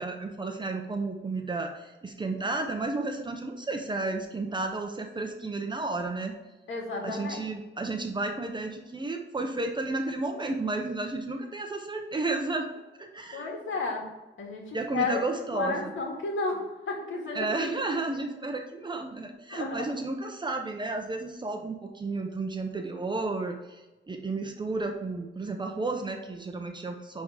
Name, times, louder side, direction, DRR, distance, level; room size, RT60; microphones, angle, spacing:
voice 1, 0.0-6.3 7.0-13.5 14.7-15.9 17.3-23.8 24.1-27.2, right 3 dB, 25° right, 4 dB, 0.7 m, -32 dB
voice 2, 6.7-7.4 13.3-14.1 14.4-15.2 15.5-17.7 18.1-18.2 19.5-19.9, left 4 dB, 85° left, 1 dB, 1.9 m, -32 dB
9.7 x 3.6 x 4.8 m, 1.1 s
wide cardioid pair, 150°, 20 cm